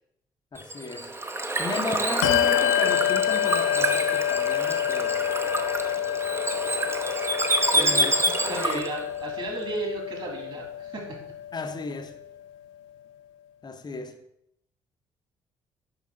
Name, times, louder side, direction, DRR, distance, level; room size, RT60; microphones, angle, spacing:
voice 1, 0.5-1.2 1.6-5.2 7.7-8.8 11.5-12.2 13.6-14.2, left 3 dB, 30° left, 0.8 m, -35 dB
Bird / Water, 0.6-9.0, right 2 dB, 20° right, 0.7 m, -27 dB
Bell, 2.2-12.2, left 11 dB, 80° left, 0.4 m, -28 dB
voice 2, 8.4-11.2, right 2 dB, 40° right, 2.6 m, -34 dB
5.8 x 5.3 x 3.8 m
hypercardioid pair, 50°, 13 cm